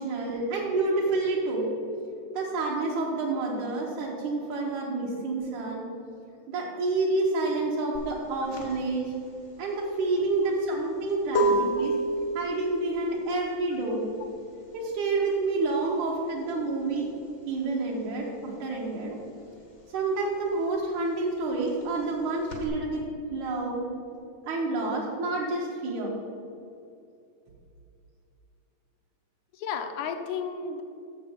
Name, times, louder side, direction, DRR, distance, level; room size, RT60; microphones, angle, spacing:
voice 1, 0.0-1.7 2.3-5.9 6.5-9.1 9.6-11.9 12.3-14.1 14.7-17.1 17.5-19.2 19.9-23.0 23.3-23.9 24.5-26.1, right 3 dB, 80° right, -4 dB, 2.5 m, -28 dB
sound 1, 7.9-18.2 18.5-22.7, right 1 dB, 55° left, 0.7 m, -32 dB
voice 2, 10.4-10.8 11.4-11.5 29.5-30.8, left 6 dB, 80° left, 6 dB, 2.0 m, -33 dB
7.2 x 6.8 x 5.6 m, 2.6 s
omnidirectional pair, 3.4 m